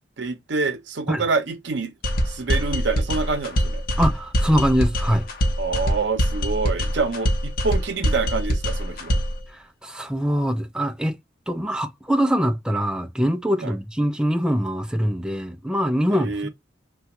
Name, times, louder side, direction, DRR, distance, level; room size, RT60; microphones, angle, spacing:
voice 1, 0.2-1.9 2.3-3.8 5.6-9.2 13.6-13.7 16.1-16.5, right 4 dB, 70° right, 0.7 m, -26 dB
sound 1, 2.0-9.4, equal, 50° left, 0.8 m, -23 dB
voice 2, 4.0-5.3 9.5-11.2 11.5-16.5, equal, 5° right, 0.4 m, -23 dB
3.3 x 2.3 x 2.9 m
head